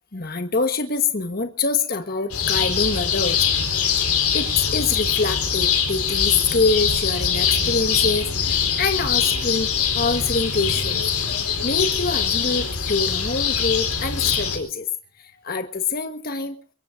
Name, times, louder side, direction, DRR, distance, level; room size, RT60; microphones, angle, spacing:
voice 1, 0.1-3.5 4.0-4.1 4.3-9.7 9.9-11.0 11.6-14.9 15.2-16.6, left 4 dB, 40° left, 1.4 m, -25 dB
sound 1, 2.3-14.6, left 7 dB, 85° left, 4.5 m, -23 dB
23.5 x 22.5 x 2.7 m
head